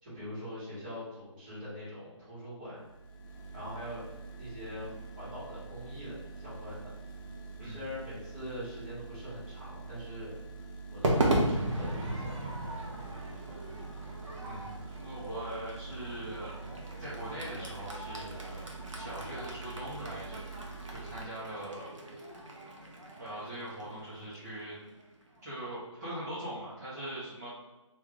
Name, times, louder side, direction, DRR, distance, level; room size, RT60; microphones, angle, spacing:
voice 1, 0.0-2.9 3.5-4.1 4.3-6.9 7.6-10.4 10.9-12.4, equal, 20° right, -11 dB, 1.5 m, -43 dB
sound 1, 2.7-21.2, right 4 dB, 45° left, 0.9 m, -45 dB
Crowd / Fireworks, 11.0-25.4, right 1 dB, 75° right, 1.0 m, -36 dB
voice 2, 14.4-16.6 17.0-18.6 18.9-20.4 20.9-21.9 23.2-24.7 25.4-27.5, right 1 dB, 35° right, -11 dB, 1.0 m, -41 dB
3.3 x 2.6 x 3.6 m, 1.1 s
figure-of-eight pair, 170°, 16 cm